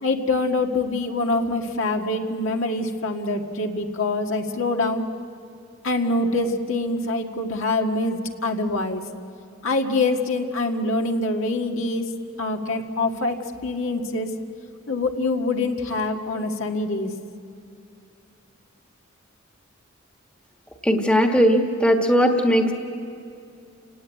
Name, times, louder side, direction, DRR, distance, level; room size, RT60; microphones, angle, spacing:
voice 1, 0.0-5.1 5.8-9.0 9.6-12.1 12.4-14.3 14.9-17.1, left 2 dB, 70° left, 3 dB, 1.8 m, -25 dB
voice 2, 20.8-22.7, equal, 5° left, 3 dB, 1.4 m, -18 dB
29.5 x 17.0 x 9.5 m, 2.5 s
head